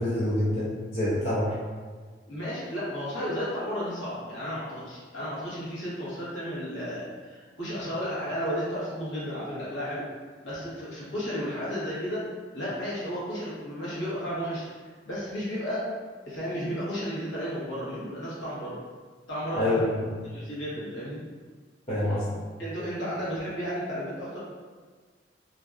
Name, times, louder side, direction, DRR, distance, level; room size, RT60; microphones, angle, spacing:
voice 1, 0.0-1.6 19.6-20.1 21.9-22.3, left 1 dB, 35° left, -9 dB, 0.5 m, -26 dB
voice 2, 2.3-10.1 10.4-12.3 12.5-14.7 15.0-15.9 16.2-18.8 19.3-19.9 20.2-21.2 22.6-24.4, equal, 75° left, -9 dB, 1.0 m, -33 dB
2.5 x 2.2 x 2.3 m, 1.5 s
head